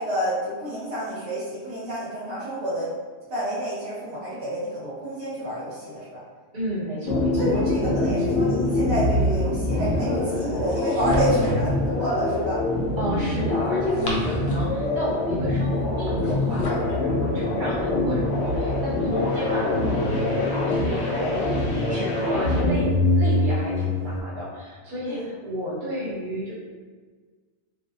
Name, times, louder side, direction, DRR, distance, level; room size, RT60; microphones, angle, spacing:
voice 1, 0.0-2.9 3.3-6.2 7.3-12.6 14.7-15.0 25.0-25.2, right 1 dB, 75° right, -8 dB, 0.9 m, -29 dB
voice 2, 6.5-7.6 13.0-21.6 21.9-26.5, equal, 50° right, -8 dB, 1.0 m, -31 dB
sound 1, 7.0-24.2, left 2 dB, 75° left, 0.8 m, -24 dB
sound 2, 10.7-11.7 13.7-14.8 16.0-16.9, left 1 dB, 55° left, 0.5 m, -34 dB
2.6 x 2.0 x 2.6 m, 1.5 s
omnidirectional pair, 1.1 m